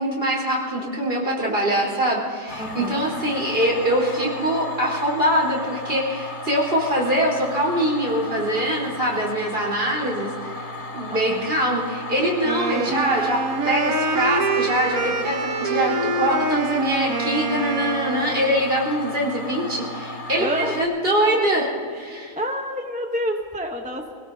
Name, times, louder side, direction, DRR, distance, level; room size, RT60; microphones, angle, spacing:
voice 1, 0.0-10.6 10.9-21.7 21.9-22.3, right 1 dB, 45° right, -4 dB, 4.5 m, -23 dB
sound 1, 2.5-20.8, left 2 dB, 35° left, 1.8 m, -35 dB
voice 2, 2.6-3.0 11.1-11.5 20.4-20.8 21.2-21.4 22.1-24.1, equal, 5° right, 2 dB, 0.8 m, -29 dB
Wind instrument woodwind instrument, 12.4-18.6, right 3 dB, 85° right, 1.5 m, -25 dB
27.0 x 17.0 x 2.8 m, 2.4 s
omnidirectional pair, 1.4 m